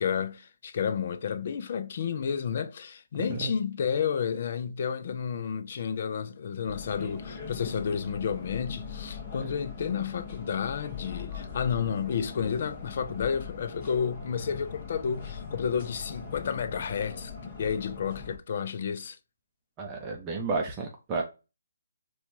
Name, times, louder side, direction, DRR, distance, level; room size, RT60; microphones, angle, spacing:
voice 1, 0.0-19.2, left 7 dB, 45° left, 0.5 m, -31 dB
sound 1, 6.6-18.4, left 6 dB, 30° left, 1.1 m, -41 dB
voice 2, 19.8-21.2, right 4 dB, 20° right, 0.6 m, -32 dB
4.4 x 2.3 x 2.6 m
figure-of-eight pair, 150°, 0 cm